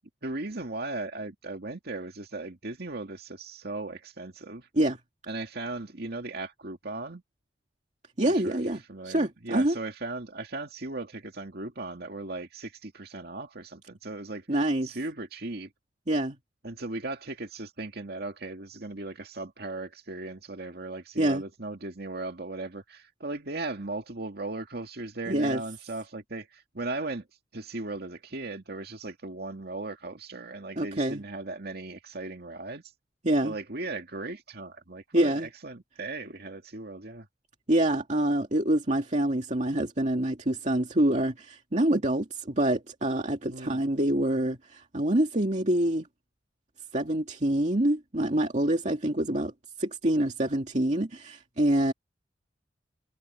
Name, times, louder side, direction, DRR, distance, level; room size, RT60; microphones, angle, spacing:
voice 1, 0.2-4.7 5.3-7.2 8.2-14.5 14.8-15.7 16.6-27.3 27.5-32.8 33.4-37.3 43.5-43.8, right 2 dB, 60° right, 2.3 m, -37 dB
voice 2, 8.2-9.8 14.5-14.9 16.1-16.4 21.2-21.4 25.3-25.6 30.8-31.2 33.2-33.6 35.1-35.5 37.7-46.1 46.9-49.5 49.8-51.9, right 1 dB, 40° right, 2.3 m, -26 dB
head